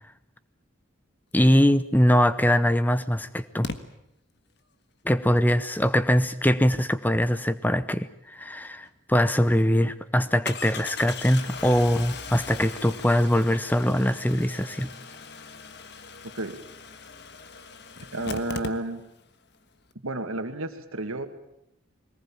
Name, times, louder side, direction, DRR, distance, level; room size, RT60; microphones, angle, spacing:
voice 1, 1.3-3.7 5.0-14.9, equal, 10° left, 14 dB, 0.8 m, -22 dB
Engine starting, 2.1-2.2 3.6-3.8 8.8-8.9 9.3-9.4 10.5-19.3 19.5-19.6 19.8-19.9, left 4 dB, 55° left, 1.4 m, -39 dB
voice 2, 18.1-19.0 20.0-21.3, right 2 dB, 90° right, 8 dB, 2.1 m, -31 dB
22.0 x 19.5 x 8.8 m, 0.80 s
head